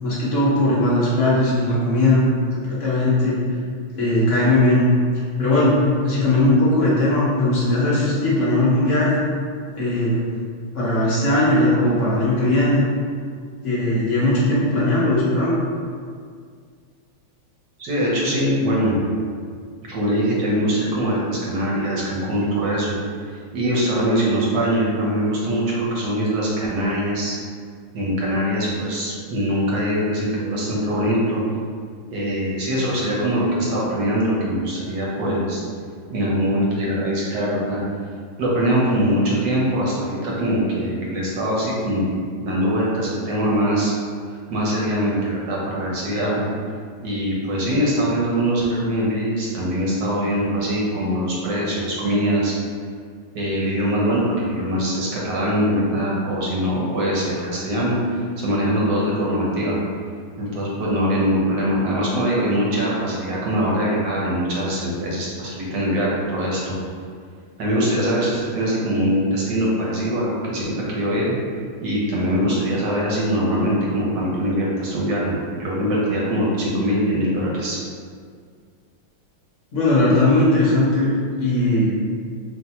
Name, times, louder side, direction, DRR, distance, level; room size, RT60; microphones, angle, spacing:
voice 1, 0.0-2.2 2.5-3.4 3.9-4.9 5.4-5.8 6.0-9.2 9.7-10.2 10.7-12.8 13.6-15.6 79.7-81.1 81.4-81.9, left 1 dB, 55° left, -8 dB, 0.8 m, -18 dB
voice 2, 17.8-19.0 19.8-22.9 23.5-27.4 27.9-31.4 32.1-35.6 36.1-37.8 38.4-42.1 42.4-43.9 44.5-46.4 47.0-52.5 53.3-59.8 60.4-66.7 67.6-71.3 71.8-77.8, equal, 65° right, -5 dB, 1.3 m, -22 dB
3.4 x 2.6 x 4.2 m, 2.1 s
omnidirectional pair, 2.3 m